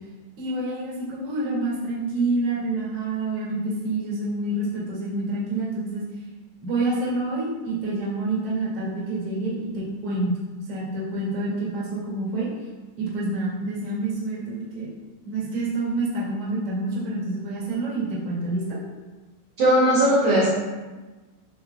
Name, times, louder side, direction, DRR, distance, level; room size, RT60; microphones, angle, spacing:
voice 1, 0.4-6.0 6.6-10.4 10.7-12.5 13.0-14.9 15.2-18.8, right 2 dB, 40° right, -6 dB, 2.4 m, -27 dB
voice 2, 19.6-20.5, right 1 dB, 55° right, -8 dB, 2.4 m, -18 dB
13.5 x 5.2 x 2.4 m, 1.2 s
omnidirectional pair, 5.9 m